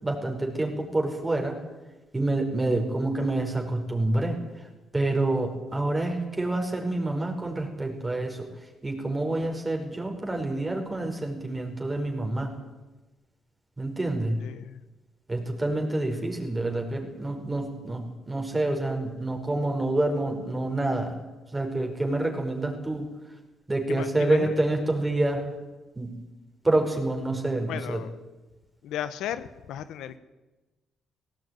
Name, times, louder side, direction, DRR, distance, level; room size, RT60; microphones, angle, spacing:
voice 1, 0.0-1.6 2.1-4.7 4.9-8.5 8.8-12.5 13.8-14.4 15.3-21.1 21.5-23.1 23.7-25.4 25.9-26.2 26.6-28.0, right 2 dB, 15° right, 2 dB, 5.0 m, -27 dB
voice 2, 14.4-14.8 23.9-24.6 27.7-28.1 28.8-30.2, left 10 dB, 85° left, 13 dB, 1.2 m, -35 dB
18.0 x 17.5 x 9.4 m, 1.2 s
cardioid pair, 90°, 0 cm